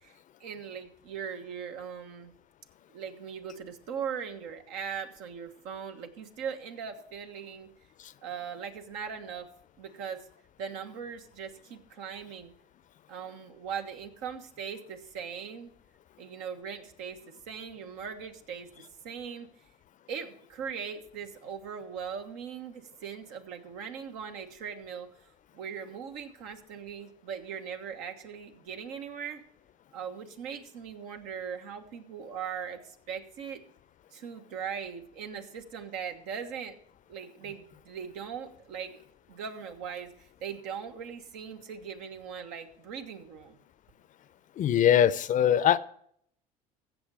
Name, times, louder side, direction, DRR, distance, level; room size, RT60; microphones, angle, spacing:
voice 1, 0.0-2.3 2.9-7.7 8.2-9.5 9.8-10.2 10.6-12.5 13.1-15.7 16.2-19.5 20.1-25.1 25.5-29.4 29.9-33.6 34.1-36.8 37.1-39.0 39.3-43.6, right 7 dB, 75° right, 1.4 m, -40 dB
voice 2, 44.6-45.8, left 10 dB, 45° left, 0.6 m, -22 dB
15.5 x 6.5 x 4.8 m
hypercardioid pair, 75°, 19 cm